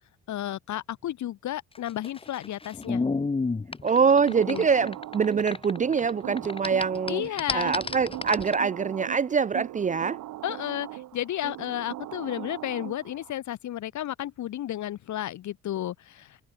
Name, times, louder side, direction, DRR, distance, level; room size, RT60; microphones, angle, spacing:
voice 1, 0.3-3.0 4.5-4.7 7.1-7.8 10.4-16.4, left 12 dB, 70° left, 1.7 m, -32 dB
sound 1, 1.8-6.1 6.4-8.5, left 3 dB, 20° left, 1.0 m, -31 dB
voice 2, 3.8-7.2 7.5-10.2, right 6 dB, 25° right, 0.4 m, -24 dB
sound 2, 3.9-13.3, right 15 dB, 80° right, 1.7 m, -40 dB
cardioid pair, 90°, 30 cm